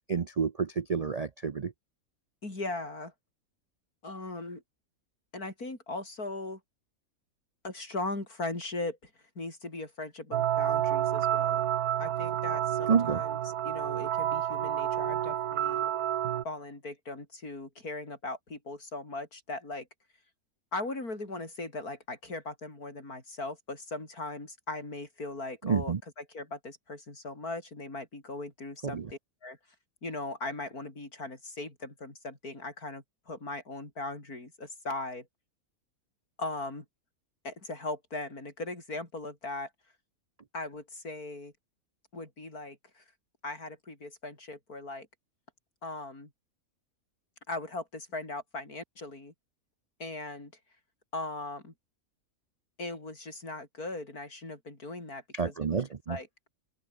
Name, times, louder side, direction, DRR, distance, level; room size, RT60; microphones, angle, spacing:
voice 1, 0.1-1.7 12.9-13.2 25.6-26.0 28.8-29.1 55.3-56.2, right 6 dB, 50° right, 0.4 m, -29 dB
voice 2, 2.4-3.1 4.0-4.6 5.3-6.6 7.6-9.1 9.4-11.7 12.0-13.4 13.6-15.8 16.4-19.9 20.7-29.6 30.0-35.3 36.4-36.8 37.4-39.7 40.5-41.5 42.1-43.0 43.4-45.1 45.8-46.3 47.5-49.3 50.0-50.5 51.1-51.7 52.8-56.3, left 2 dB, 90° left, 6.3 m, -39 dB
sound 1, 10.3-16.4, right 11 dB, 90° right, 1.4 m, -29 dB
open air
omnidirectional pair, 1.5 m